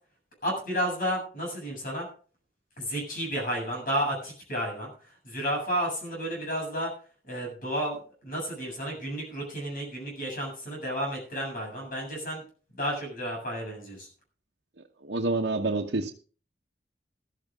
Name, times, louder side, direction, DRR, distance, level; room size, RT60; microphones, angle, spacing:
voice 1, 0.4-2.1 2.8-4.9 5.2-6.9 7.3-12.4 12.7-14.1, equal, 50° left, 7.4 m, -32 dB
voice 2, 15.0-16.1, right 2 dB, 80° right, 1.1 m, -27 dB
14.5 x 13.5 x 3.6 m
head